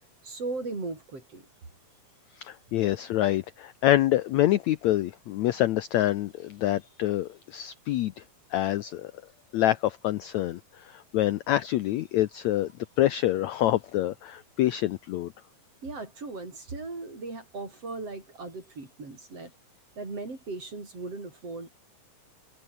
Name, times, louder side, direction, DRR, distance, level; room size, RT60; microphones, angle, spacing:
voice 1, 0.2-1.5 15.8-19.5 20.0-21.7, right 3 dB, 40° right, 7.4 m, -37 dB
voice 2, 2.4-8.2 8.5-9.1 9.5-12.7 13.0-15.3, left 14 dB, 80° left, 1.7 m, -26 dB
omnidirectional pair, 4.1 m